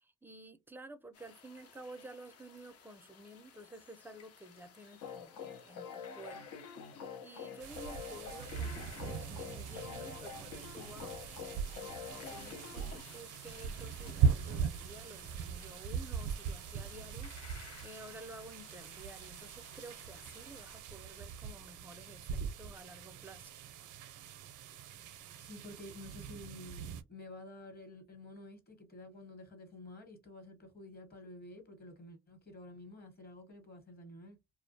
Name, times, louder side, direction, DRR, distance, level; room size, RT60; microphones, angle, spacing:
voice 1, 0.0-6.5 7.2-23.5, right 1 dB, 5° right, 0.4 m, -52 dB
sound 1, 1.1-20.8, left 6 dB, 55° left, 0.6 m, -57 dB
sound 2, 5.0-13.0, left 6 dB, 80° left, 0.8 m, -46 dB
sound 3, 7.6-27.0, right 6 dB, 75° right, 0.5 m, -39 dB
voice 2, 25.0-34.4, left 1 dB, 30° left, 1.1 m, -51 dB
2.3 x 2.1 x 2.6 m
cardioid pair, 90°, 30 cm